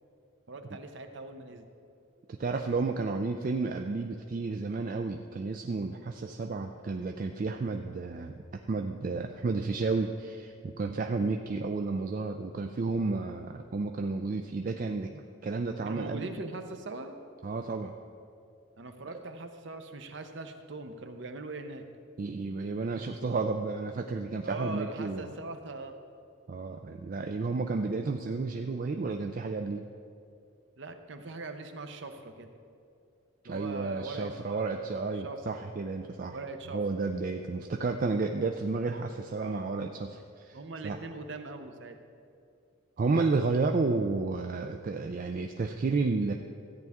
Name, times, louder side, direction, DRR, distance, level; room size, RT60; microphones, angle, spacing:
voice 1, 0.5-1.6 15.8-17.1 18.8-21.9 24.4-26.0 30.8-32.5 33.4-35.7 36.3-36.8 39.4-39.6 40.5-42.0, right 2 dB, 55° right, 7 dB, 0.7 m, -41 dB
voice 2, 2.3-8.4 8.7-16.3 17.4-17.9 22.2-25.3 26.5-29.9 33.4-36.4 36.7-40.6 40.8-41.0 43.0-46.3, right 3 dB, 40° right, 4 dB, 0.3 m, -31 dB
13.5 x 9.2 x 3.6 m, 2.4 s
head